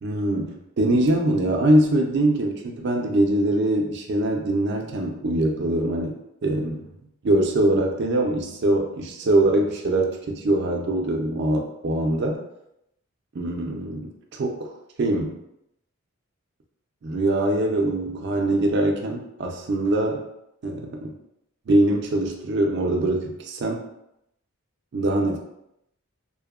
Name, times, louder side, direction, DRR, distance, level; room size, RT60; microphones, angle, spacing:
voice 1, 0.0-6.1 6.4-6.8 7.2-12.4 13.3-14.7 15.0-15.3 17.0-20.2 20.6-21.1 21.7-23.8 24.9-25.4, right 1 dB, 50° right, 2 dB, 0.4 m, -23 dB
2.7 x 2.1 x 2.3 m, 0.82 s
head